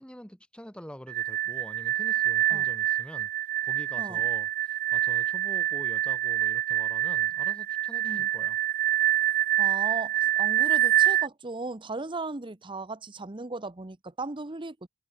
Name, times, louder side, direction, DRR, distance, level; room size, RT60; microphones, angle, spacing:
voice 1, 0.0-8.6, equal, 5° left, 5.3 m, -46 dB
sound 1, 1.1-11.3, right 13 dB, 45° right, 0.3 m, -26 dB
voice 2, 9.6-14.9, right 3 dB, 25° right, 0.9 m, -37 dB
head